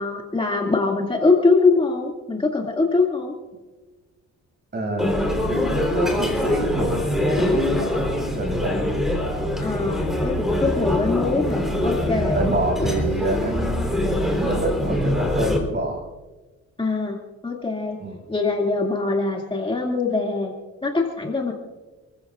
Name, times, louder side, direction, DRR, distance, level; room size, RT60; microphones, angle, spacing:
voice 1, 0.0-3.3 9.6-12.4 12.8-12.9 16.8-18.0 18.3-20.5 20.8-21.5, left 3 dB, 15° left, -1 dB, 2.3 m, -23 dB
voice 2, 4.7-5.1 5.7-7.6 8.3-8.8 12.3-13.9 14.4-16.1 18.0-18.2, right 1 dB, 35° right, 2 dB, 6.5 m, -26 dB
sound 1, 5.0-15.6, left 1 dB, ahead, 3.7 m, -24 dB
28.0 x 15.0 x 2.5 m, 1.2 s
cardioid pair, 90°, 30 cm